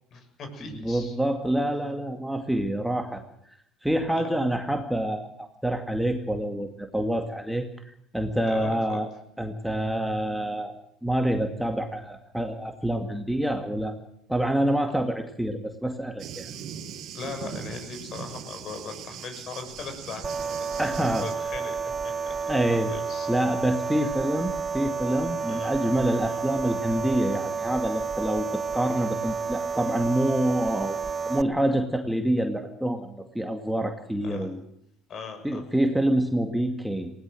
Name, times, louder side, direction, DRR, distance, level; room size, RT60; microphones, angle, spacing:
voice 1, 0.1-1.1 4.1-4.4 8.4-9.0 17.1-20.2 20.8-21.8 22.0-22.1 22.5-22.6 22.9-23.3 24.0-24.1 25.5-25.7 26.2-26.4 34.2-34.5 35.1-35.7, left 4 dB, 50° left, 7 dB, 6.7 m, -39 dB
voice 2, 0.8-3.2 3.8-7.7 8.1-9.1 9.4-10.7 11.0-14.0 14.3-16.5 20.8-21.2 22.5-22.9 23.3-31.0 31.2-34.6 35.4-37.1, right 1 dB, 5° right, 4 dB, 2.3 m, -27 dB
Thunder, 16.2-21.4, right 9 dB, 60° right, 2.2 m, -40 dB
sound 1, 20.2-31.4, right 5 dB, 25° right, 0.8 m, -31 dB
19.0 x 18.0 x 7.7 m, 0.73 s
supercardioid pair, 85°, 0 cm